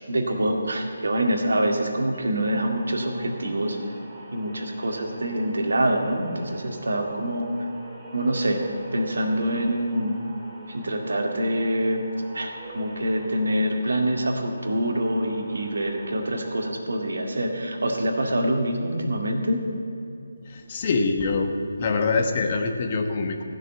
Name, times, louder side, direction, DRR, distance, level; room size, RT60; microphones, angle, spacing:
voice 1, 0.1-3.8 4.3-7.7 8.1-8.6 8.9-10.2 10.7-12.1 12.3-19.7, right 1 dB, 75° right, 2 dB, 2.1 m, -25 dB
sound 1, 2.5-16.7, right 2 dB, 10° right, 3.3 m, -44 dB
voice 2, 20.5-21.5 21.8-23.4, left 4 dB, 35° left, 5 dB, 1.2 m, -24 dB
15.0 x 6.5 x 8.8 m, 2.7 s
figure-of-eight pair, 155°, 0 cm